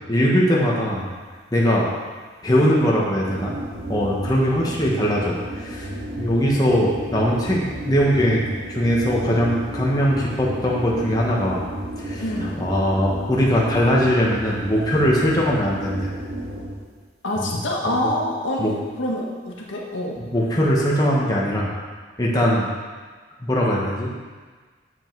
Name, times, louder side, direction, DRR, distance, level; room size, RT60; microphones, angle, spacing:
voice 1, 0.1-1.1 1.5-1.9 2.4-3.5 3.9-5.9 6.2-8.4 8.7-11.6 12.0-12.2 12.6-16.1 17.4-17.5 17.9-18.0 18.6-18.7 20.3-21.7 22.2-22.7 23.4-24.1, equal, 20° left, -5 dB, 1.3 m, -20 dB
sound 1, 3.2-16.9, right 1 dB, 55° right, 2.7 m, -32 dB
voice 2, 12.2-12.6 17.2-20.2, left 1 dB, 85° left, -2 dB, 1.5 m, -26 dB
8.8 x 7.1 x 4.7 m, 1.4 s
head